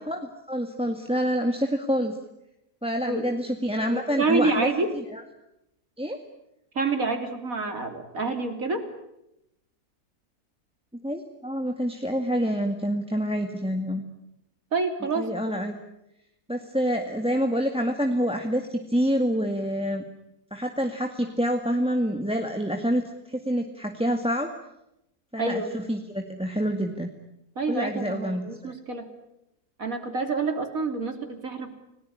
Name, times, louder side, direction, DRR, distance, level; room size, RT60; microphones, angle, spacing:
voice 1, 0.0-2.2 2.8-4.7 5.1-5.2 6.0-6.2 11.0-14.0 15.2-15.8 16.5-20.0 20.5-23.0 23.3-24.5 25.3-25.6 25.9-27.1 27.7-28.7, equal, 5° right, 4 dB, 1.9 m, -27 dB
voice 2, 3.1-3.4 3.9-5.0 6.8-8.9 14.7-15.3 25.4-25.7 27.6-29.2 29.8-31.8, right 3 dB, 60° right, 6 dB, 3.7 m, -28 dB
30.0 x 19.0 x 9.9 m, 0.86 s
omnidirectional pair, 1.7 m